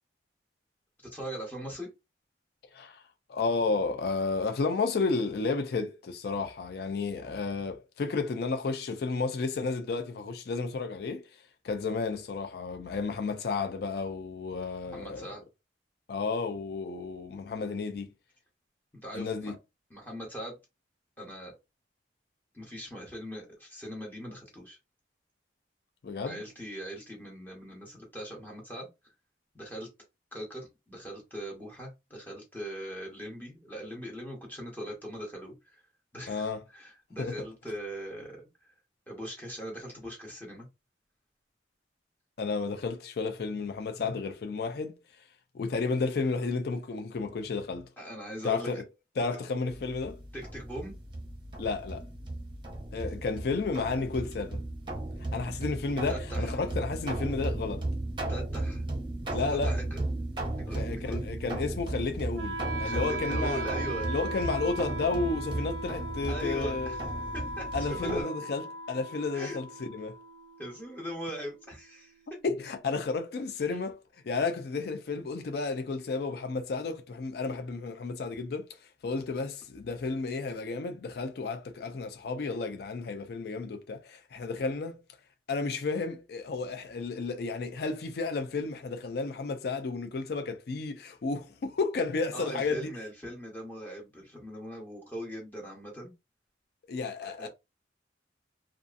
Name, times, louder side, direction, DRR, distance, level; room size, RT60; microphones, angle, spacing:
voice 1, 1.1-1.9 14.9-15.4 18.9-19.5 19.9-20.6 21.2-21.5 22.5-24.8 26.3-28.9 29.5-29.9 30.3-35.8 36.1-38.4 39.1-40.7 48.0-48.8 50.3-50.9 56.1-56.6 58.3-58.8 59.2-60.0 60.6-61.2 62.8-64.1 66.3-68.3 69.3-69.6 70.6-72.1 92.3-96.1 97.2-97.5, equal, 10° left, 0.8 m, -40 dB
voice 2, 3.3-11.3 11.6-15.3 16.1-18.1 19.1-19.5 26.0-26.4 36.3-36.6 37.2-37.5 42.4-45.0 45.5-47.9 48.4-48.8 49.2-50.2 51.6-52.0 52.9-54.6 55.3-57.9 59.3-59.8 60.7-63.6 64.1-67.0 67.7-70.2 72.4-74.0 74.3-78.8 79.0-85.0 85.5-92.9 96.9-97.5, left 4 dB, 60° left, 0.4 m, -32 dB
sound 1, 49.7-68.2, right 2 dB, 25° right, 0.7 m, -35 dB
Wind instrument woodwind instrument, 62.3-72.3, right 2 dB, 90° right, 0.3 m, -38 dB
2.6 x 2.4 x 2.4 m
head